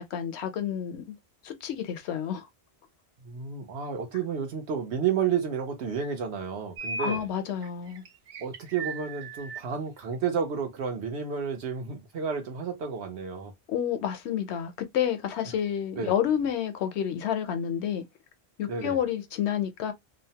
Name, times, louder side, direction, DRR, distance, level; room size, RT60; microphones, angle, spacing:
voice 1, 0.1-1.2 1.4-2.5 7.0-8.0 13.7-18.0 18.6-19.9, left 9 dB, 90° left, 0.9 m, -29 dB
voice 2, 3.2-7.3 8.4-13.5 15.9-16.1 18.7-19.0, right 6 dB, 90° right, 1.0 m, -31 dB
sound 1, 6.8-7.2 7.6-9.6, right 3 dB, 55° right, 0.6 m, -37 dB
2.7 x 2.1 x 2.7 m
omnidirectional pair, 1.1 m